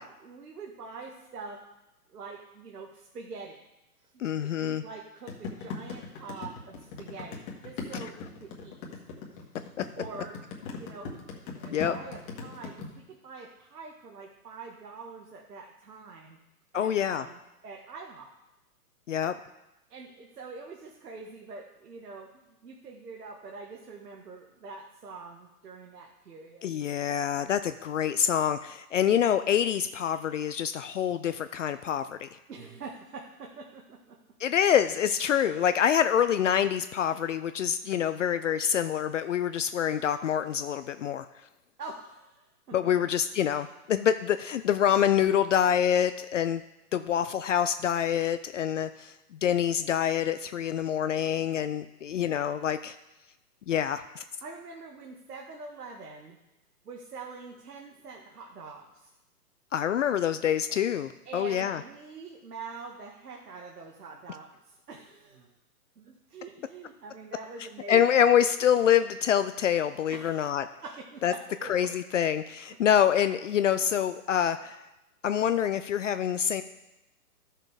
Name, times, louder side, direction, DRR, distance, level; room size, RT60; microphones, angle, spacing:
voice 1, 0.0-1.6 2.1-3.6 4.1-8.8 9.3-11.3 11.6-16.4 16.7-18.3 19.9-26.8 32.5-34.2 41.8-42.9 54.4-56.4 56.9-59.1 61.2-65.5 66.0-68.1 70.1-70.4 70.8-71.9, right 4 dB, 75° right, 0 dB, 1.7 m, -45 dB
voice 2, 4.2-4.8 11.7-11.9 16.7-17.3 19.1-19.3 26.6-32.3 34.4-41.3 42.7-46.6 46.9-53.0 53.7-54.2 59.7-61.8 67.9-70.7 71.2-71.3 71.7-74.8 75.2-76.6, left 9 dB, 55° left, 11 dB, 0.5 m, -26 dB
sound 1, 5.3-12.9, left 5 dB, 25° left, 1.8 m, -39 dB
12.5 x 6.6 x 4.9 m, 0.97 s
hypercardioid pair, 145°, 47 cm